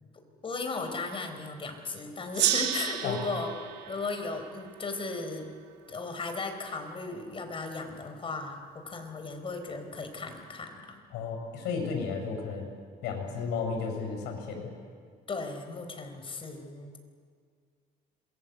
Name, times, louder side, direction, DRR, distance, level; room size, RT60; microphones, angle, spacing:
voice 1, 0.4-3.5 3.9-5.5 5.9-11.0 15.3-17.0, left 3 dB, 30° left, 6 dB, 4.1 m, -36 dB
Gong, 2.3-5.5, right 12 dB, 90° right, 2.1 m, -32 dB
voice 2, 11.1-12.7 13.0-14.7, left 5 dB, 90° left, 3 dB, 7.2 m, -33 dB
27.0 x 21.5 x 8.2 m, 2.1 s
cardioid pair, 110°, 17 cm